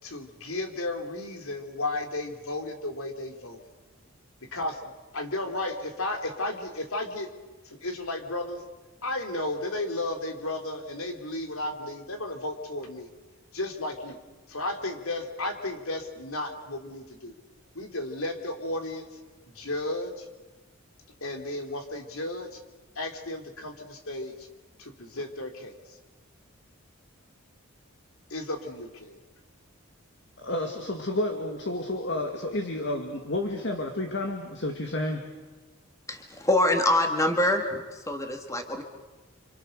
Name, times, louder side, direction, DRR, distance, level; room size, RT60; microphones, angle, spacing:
voice 1, 0.0-3.6 4.5-7.3 7.6-8.6 9.0-13.1 13.5-14.2 14.5-17.3 17.7-19.0 19.5-20.3 21.2-22.6 22.9-24.5 24.8-26.0 28.3-29.2, left 2 dB, 75° left, 5 dB, 3.3 m, -34 dB
voice 2, 30.4-35.3, left 1 dB, 55° left, 3 dB, 2.2 m, -30 dB
voice 3, 36.1-38.8, left 1 dB, 15° left, 4 dB, 2.2 m, -25 dB
29.5 x 26.5 x 6.7 m, 1.2 s
head